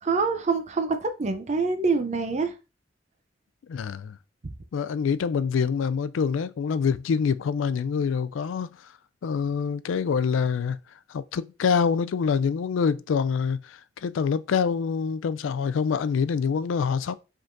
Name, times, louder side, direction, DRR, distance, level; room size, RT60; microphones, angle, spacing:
voice 1, 0.0-2.5, right 4 dB, 35° right, 0.5 m, -25 dB
voice 2, 3.7-4.2 4.7-8.9 9.2-10.8 11.1-17.1, left 6 dB, 80° left, 0.3 m, -26 dB
5.1 x 3.6 x 2.5 m
head